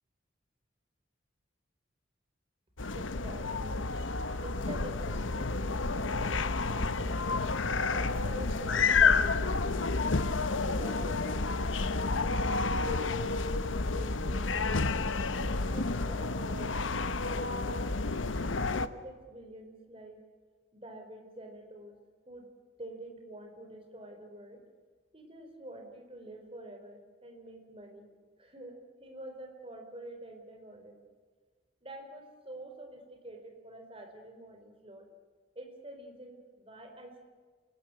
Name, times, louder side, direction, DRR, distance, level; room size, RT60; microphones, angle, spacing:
sound 1, 2.8-18.9, left 4 dB, 85° left, 1.1 m, -30 dB
voice 1, 2.9-3.9 4.4-7.3 7.9-10.0 10.7-11.8 12.3-14.8 15.4-18.1 18.4-20.2 20.7-22.0 22.3-22.5 22.8-24.6 25.1-28.1 28.4-31.0 31.8-35.1 35.5-37.2, right 1 dB, 30° right, 4 dB, 4.3 m, -47 dB
27.0 x 19.0 x 7.7 m, 1.5 s
head